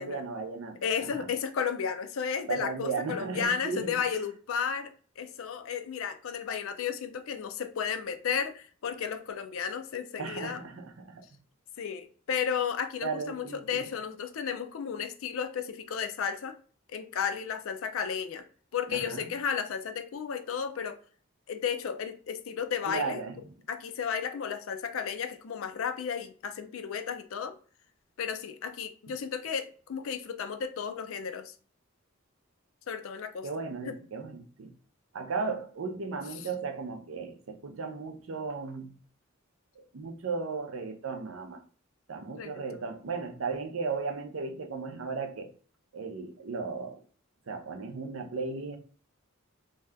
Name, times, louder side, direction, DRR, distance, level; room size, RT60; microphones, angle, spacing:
voice 1, 0.0-1.3 2.5-4.2 10.2-11.2 13.0-13.8 18.9-19.3 22.9-23.4 33.4-34.7 35.1-39.0 39.8-41.6 42.1-45.5 45.9-47.0 47.5-48.8, right 4 dB, 75° right, 0.5 m, -36 dB
voice 2, 0.8-4.9 5.2-10.6 11.8-16.6 16.9-18.4 18.7-21.0 21.5-23.2 23.7-27.5 28.2-31.5 32.9-33.5 33.9-34.0 42.4-42.8, left 7 dB, 75° left, 0.4 m, -33 dB
2.7 x 2.3 x 3.3 m
head